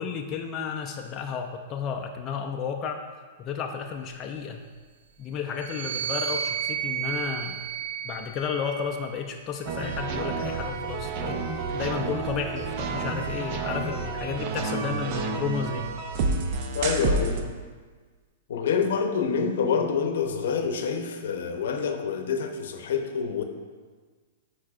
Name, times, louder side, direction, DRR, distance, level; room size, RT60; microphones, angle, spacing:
voice 1, 0.0-3.0 3.4-4.6 5.2-7.6 8.0-11.4 11.7-15.9, left 6 dB, 25° left, 3 dB, 0.4 m, -32 dB
sound 1, 5.5-9.1 10.0-11.6, right 10 dB, 85° right, 1.1 m, -34 dB
sound 2, 9.7-17.4, right 4 dB, 45° right, 0.6 m, -29 dB
voice 2, 16.7-17.5 18.5-23.4, left 6 dB, 70° left, 6 dB, 0.7 m, -27 dB
8.7 x 4.6 x 2.4 m, 1.5 s
hypercardioid pair, 145°, 0 cm